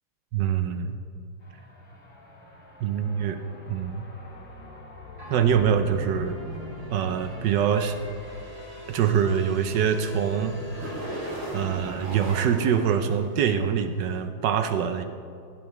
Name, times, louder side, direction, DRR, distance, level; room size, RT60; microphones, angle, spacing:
voice 1, 0.3-0.9 2.8-3.4 3.7-4.0 5.3-6.4 6.9-8.0 8.9-10.6 11.5-15.0, right 8 dB, 75° right, 8 dB, 1.0 m, -24 dB
sound 1, 1.4-11.8, equal, 35° left, 1.8 m, -45 dB
sound 2, 5.2-13.9, equal, 60° right, 3.1 m, -39 dB
15.5 x 9.0 x 3.1 m, 2.4 s
omnidirectional pair, 2.4 m